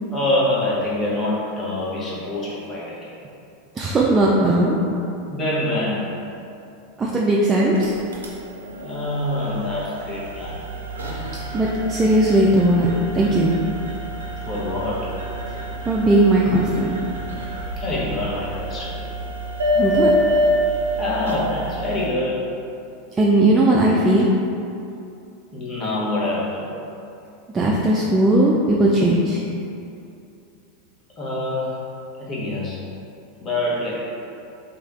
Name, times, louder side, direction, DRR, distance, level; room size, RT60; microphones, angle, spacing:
voice 1, 0.1-3.1 5.3-6.1 8.8-10.6 11.1-11.2 14.5-15.1 17.8-19.1 21.0-22.4 25.5-26.7 31.2-31.8 32.2-32.8 33.4-34.0, left 1 dB, 30° left, -7 dB, 0.9 m, -25 dB
voice 2, 3.8-4.8 7.0-7.9 11.5-12.9 13.1-13.5 15.9-16.9 19.8-20.1 23.2-24.3 27.5-29.4, right 1 dB, 20° right, -4 dB, 0.3 m, -18 dB
sound 1, 7.6-22.1, equal, 85° right, 0.5 m, -27 dB
3.2 x 2.8 x 2.4 m, 2.6 s
hypercardioid pair, 90°, 0 cm